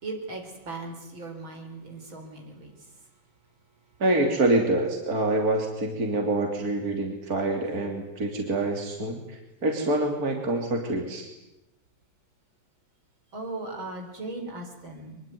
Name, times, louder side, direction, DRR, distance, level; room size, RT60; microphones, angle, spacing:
voice 1, 0.0-2.7 13.3-15.3, right 2 dB, 65° right, 3 dB, 5.0 m, -38 dB
voice 2, 4.0-11.3, right 2 dB, 45° right, 3 dB, 3.6 m, -26 dB
24.0 x 22.5 x 9.4 m, 0.96 s
omnidirectional pair, 2.3 m